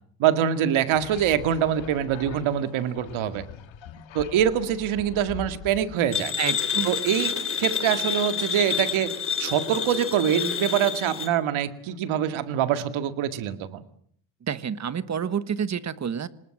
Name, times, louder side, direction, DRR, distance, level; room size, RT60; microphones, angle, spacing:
voice 1, 0.2-3.5 4.1-6.3 6.8-7.3 7.6-9.1 9.4-13.8, right 9 dB, 70° right, 10 dB, 2.2 m, -24 dB
sound 1, 0.9-6.0, left 10 dB, 65° left, 2.5 m, -42 dB
sound 2, 6.1-11.3, left 7 dB, 25° left, 2.7 m, -28 dB
voice 2, 6.4-6.9 14.4-16.3, right 7 dB, 35° right, 14 dB, 1.3 m, -29 dB
26.0 x 20.0 x 7.8 m, 0.64 s
cardioid pair, 140°, 50 cm